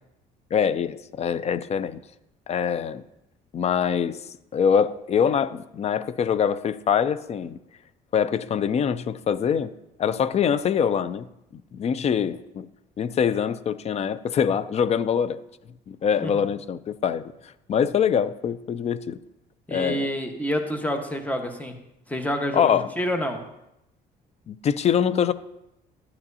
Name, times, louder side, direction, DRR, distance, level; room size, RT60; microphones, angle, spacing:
voice 1, 0.5-2.0 2.5-3.0 3.5-4.2 4.5-7.6 8.1-9.7 10.0-11.3 11.5-12.7 13.0-15.4 15.9-17.3 17.7-19.2 19.7-20.1 22.5-22.9 24.5-25.3, left 7 dB, 40° left, 0.5 m, -24 dB
voice 2, 19.7-21.7 22.1-22.7 23.0-23.4, equal, 10° left, 1.2 m, -28 dB
12.5 x 9.6 x 2.8 m
cardioid pair, 110°, 17 cm